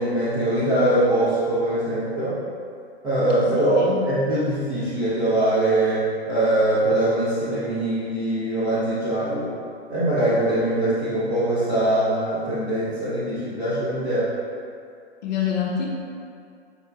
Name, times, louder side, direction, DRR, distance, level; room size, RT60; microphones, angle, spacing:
voice 1, 0.0-2.4 3.0-9.5 9.9-14.3, right 1 dB, 10° right, -13 dB, 0.3 m, -22 dB
voice 2, 3.6-4.0 15.2-15.9, left 8 dB, 40° left, -1 dB, 0.7 m, -26 dB
5.0 x 4.2 x 2.2 m, 2.3 s
hypercardioid pair, 130°, 33 cm